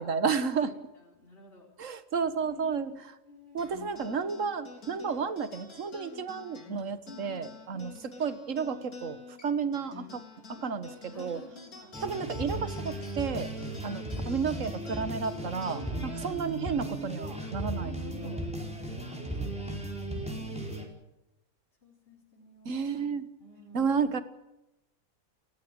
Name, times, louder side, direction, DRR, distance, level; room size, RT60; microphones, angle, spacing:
voice 1, 0.0-0.7 1.8-3.1 3.5-7.9 8.2-10.2 10.5-11.4 12.0-13.5 13.8-17.9 18.2-18.4 22.7-23.3 23.7-24.2, right 6 dB, 60° right, 11 dB, 1.8 m, -32 dB
voice 2, 0.6-1.7 2.4-2.9 3.3-3.7 7.1-8.1 10.9-12.0 13.6-14.1 15.7-16.4 17.7-18.4 19.3-20.8 21.8-22.7 23.4-24.0, left 3 dB, 40° left, -2 dB, 4.4 m, -51 dB
sound 1, 3.6-18.3, left 4 dB, 80° left, 4.3 m, -50 dB
sound 2, 11.9-20.9, right 1 dB, 5° right, 4.4 m, -36 dB
30.0 x 15.5 x 8.9 m, 0.93 s
omnidirectional pair, 1.5 m